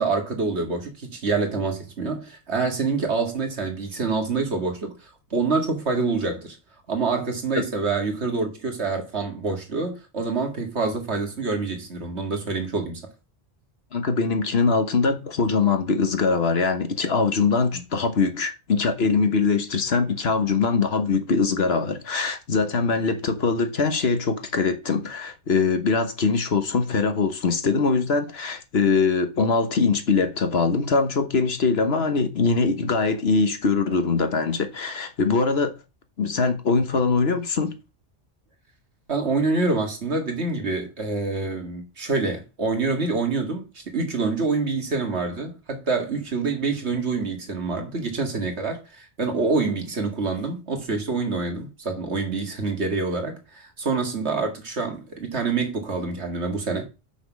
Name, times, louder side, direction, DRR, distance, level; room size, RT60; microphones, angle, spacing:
voice 1, 0.0-6.6 6.9-13.0 17.7-17.8 39.1-56.8, right 4 dB, 80° right, 2.2 m, -26 dB
voice 2, 13.9-35.8 36.2-37.8, left 4 dB, 65° left, 1.5 m, -22 dB
6.2 x 6.0 x 6.0 m
omnidirectional pair, 1.1 m